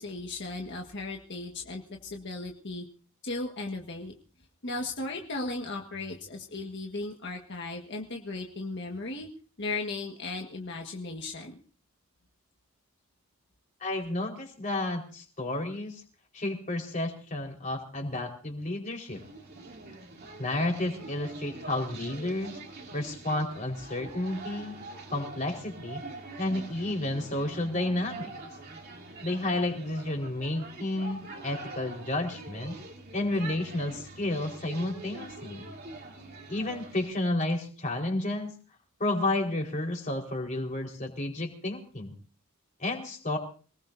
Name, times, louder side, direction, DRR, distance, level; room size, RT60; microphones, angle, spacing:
voice 1, 0.0-2.8 3.2-4.1 4.6-9.3 9.6-11.6, left 2 dB, 50° left, 1 dB, 1.6 m, -36 dB
voice 2, 13.8-16.0 16.3-19.2 20.4-22.6 22.9-24.7 25.1-26.0 26.4-28.3 29.2-32.7 33.1-35.6 36.5-38.5 39.0-42.1 42.8-43.4, left 1 dB, 35° left, 1 dB, 4.5 m, -31 dB
Granollers market, 19.1-37.1, right 2 dB, 45° right, 3.0 m, -44 dB
26.5 x 19.5 x 2.7 m, 0.40 s
head